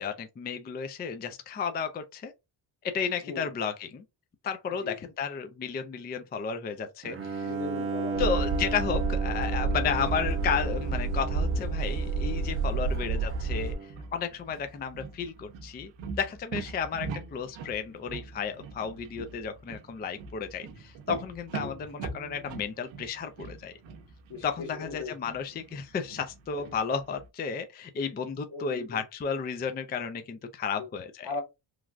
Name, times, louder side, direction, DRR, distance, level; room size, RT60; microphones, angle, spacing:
voice 1, 0.0-2.3 2.8-4.0 4.4-7.5 8.2-13.7 14.1-15.9 16.2-23.7 24.4-31.3, left 6 dB, 25° left, 0.3 m, -33 dB
Bowed string instrument, 7.0-14.0, right 4 dB, 30° right, 0.5 m, -36 dB
voice 2, 7.4-8.3 12.7-12.9 21.6-21.8 24.3-25.1 26.5-26.6 28.0-28.1 28.5-29.0 30.8-30.9 31.2-31.4, left 3 dB, 65° left, 1.6 m, -38 dB
sound 1, 8.2-13.7, right 4 dB, 55° right, 0.9 m, -29 dB
sound 2, 11.7-27.3, right 5 dB, 80° right, 0.7 m, -43 dB
3.1 x 2.3 x 2.4 m
cardioid pair, 100°, 44 cm